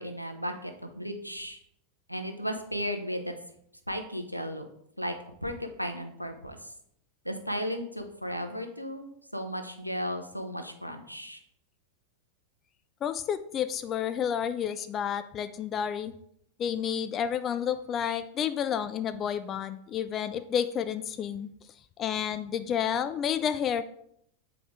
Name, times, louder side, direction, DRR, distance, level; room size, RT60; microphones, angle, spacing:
voice 1, 0.0-1.6 2.1-3.3 3.9-4.6 5.0-5.1 5.4-6.7 7.2-11.4, equal, 90° left, 6 dB, 0.8 m, -35 dB
voice 2, 13.0-16.1 16.6-21.5 22.0-23.8, left 8 dB, 30° left, 12 dB, 0.3 m, -30 dB
7.7 x 4.7 x 3.7 m, 0.71 s
figure-of-eight pair, 90°, 0 cm